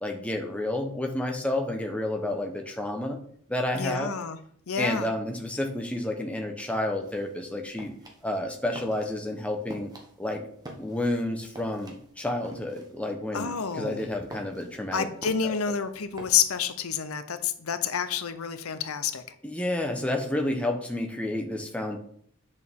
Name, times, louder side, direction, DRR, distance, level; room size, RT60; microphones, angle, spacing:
voice 1, 0.0-3.2 3.5-4.1 4.8-7.9 8.2-9.9 10.2-10.4 10.8-15.1 19.4-22.0, left 1 dB, 5° left, 2 dB, 0.9 m, -30 dB
voice 2, 3.7-4.4 4.7-5.1 13.3-14.0 14.9-19.4, left 7 dB, 75° left, 11 dB, 0.7 m, -29 dB
sound 1, 7.0-16.6, right 1 dB, 20° right, 1.1 m, -46 dB
8.5 x 6.5 x 3.6 m, 0.63 s
head